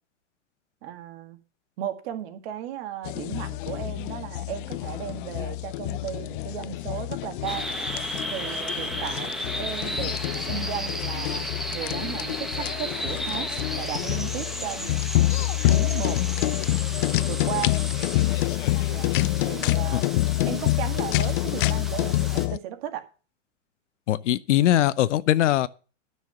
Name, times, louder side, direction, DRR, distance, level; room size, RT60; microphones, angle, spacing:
voice 1, 0.8-1.4 1.8-7.7 8.3-13.5 13.8-15.0 15.7-16.2 17.3-17.8 18.9-19.1 19.5-20.0 20.5-23.1, right 10 dB, 50° right, 2.0 m, -35 dB
sound 1, 3.0-22.6, left 17 dB, 45° left, 0.4 m, -27 dB
sound 2, 7.5-22.5, equal, ahead, 1.2 m, -34 dB
voice 2, 24.1-25.7, left 13 dB, 70° left, 0.8 m, -21 dB
9.9 x 6.4 x 6.9 m
hypercardioid pair, 130°, 37 cm